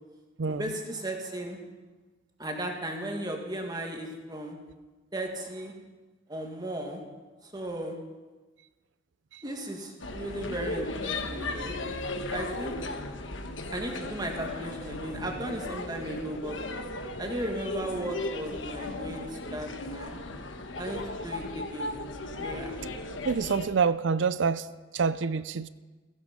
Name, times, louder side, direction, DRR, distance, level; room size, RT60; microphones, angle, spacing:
voice 1, 0.5-1.6 2.4-4.6 5.1-5.7 6.3-7.0 7.4-8.0 9.4-11.8 12.3-12.8 13.7-16.6 17.2-20.2 20.8-22.0 22.4-22.8, right 1 dB, 20° right, 2 dB, 2.0 m, -36 dB
sound 1, 10.0-23.7, left 2 dB, 75° left, 1.3 m, -36 dB
voice 2, 23.2-24.6 24.9-25.7, right 5 dB, 70° right, 15 dB, 0.5 m, -26 dB
16.5 x 15.5 x 5.3 m, 1.3 s
head